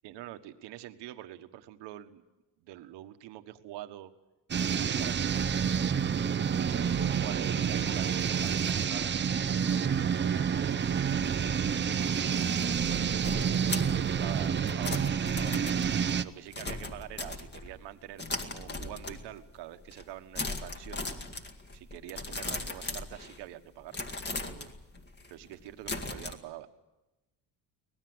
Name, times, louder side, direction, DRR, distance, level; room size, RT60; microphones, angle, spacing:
voice 1, 0.0-2.2 2.6-4.1 4.6-5.9 6.5-11.4 12.1-15.8 16.2-21.0 21.7-24.7 25.3-26.7, right 13 dB, 80° right, 8 dB, 1.6 m, -45 dB
sound 1, 4.5-16.2, right 7 dB, 25° right, 0.8 m, -28 dB
sound 2, 12.7-17.8 18.2-19.5 19.8-20.1 20.3-23.6 23.9-26.3, left 2 dB, 25° left, 2.1 m, -38 dB
25.0 x 19.0 x 8.0 m, 1.0 s
cardioid pair, 125°, 41 cm